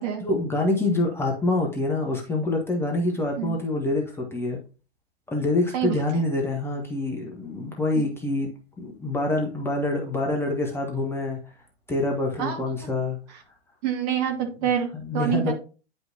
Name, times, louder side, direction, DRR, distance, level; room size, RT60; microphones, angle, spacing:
voice 1, 0.2-4.6 5.3-8.5 8.8-11.4 11.9-13.2 14.9-15.5, left 2 dB, 5° left, 0 dB, 1.0 m, -26 dB
voice 2, 13.8-15.5, right 9 dB, 35° right, 4 dB, 1.6 m, -26 dB
9.7 x 5.3 x 2.7 m, 0.35 s
figure-of-eight pair, 110°, 33 cm